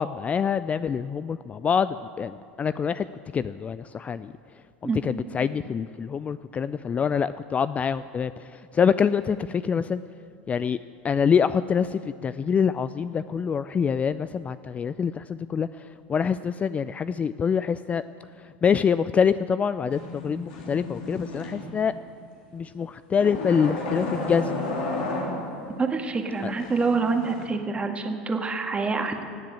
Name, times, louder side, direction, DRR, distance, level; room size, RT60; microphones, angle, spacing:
voice 1, 0.0-3.1 3.3-4.3 5.0-10.0 10.5-10.8 11.0-15.8 16.1-18.0 18.4-21.9 22.5-24.6 26.4-26.5, left 7 dB, 25° left, 14 dB, 0.3 m, -25 dB
sound 1, 19.9-22.0 23.2-25.8 26.4-27.5, left 2 dB, 70° left, 3.0 m, -33 dB
voice 2, 25.8-29.3, right 4 dB, 20° right, 4 dB, 1.7 m, -26 dB
17.5 x 7.5 x 8.7 m, 2.4 s
hypercardioid pair, 85°, 6 cm